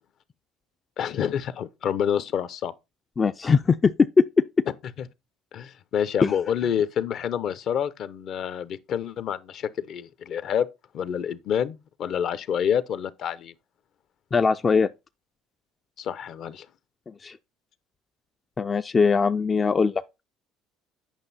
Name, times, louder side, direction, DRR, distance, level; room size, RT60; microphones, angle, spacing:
voice 1, 1.0-2.7 5.5-10.7 10.9-13.5 16.0-16.7, left 8 dB, 55° left, 0.7 m, -28 dB
voice 2, 3.2-4.2 6.2-6.3 14.3-14.9 17.1-17.4 18.6-20.0, left 5 dB, 30° left, 0.4 m, -21 dB
8.9 x 5.5 x 4.1 m
supercardioid pair, 100°, 0 cm